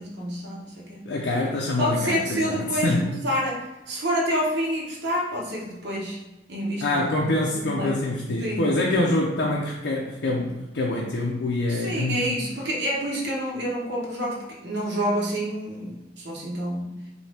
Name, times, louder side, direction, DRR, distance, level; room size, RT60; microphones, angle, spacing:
voice 1, 0.0-1.0 1.8-6.2 6.5-7.1 7.5-8.0 8.3-8.6 11.7-17.1, equal, 70° right, -2 dB, 1.0 m, -28 dB
voice 2, 1.0-3.1 6.8-12.3, left 2 dB, 70° left, -2 dB, 0.5 m, -25 dB
4.2 x 2.7 x 3.3 m, 1.0 s
head